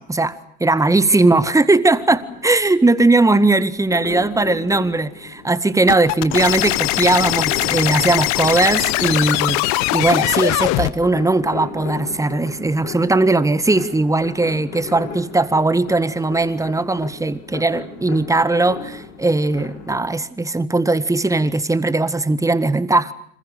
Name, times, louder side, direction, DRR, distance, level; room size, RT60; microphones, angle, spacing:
voice 1, 0.0-0.3 0.6-9.6 9.9-23.1, right 2 dB, 10° right, 1.6 m, -18 dB
sound 1, 1.9-20.0, left 6 dB, 70° left, 7.2 m, -36 dB
sound 2, 5.9-10.9, left 19 dB, 50° left, 1.5 m, -20 dB
29.5 x 27.0 x 6.7 m
figure-of-eight pair, 70°, 35 cm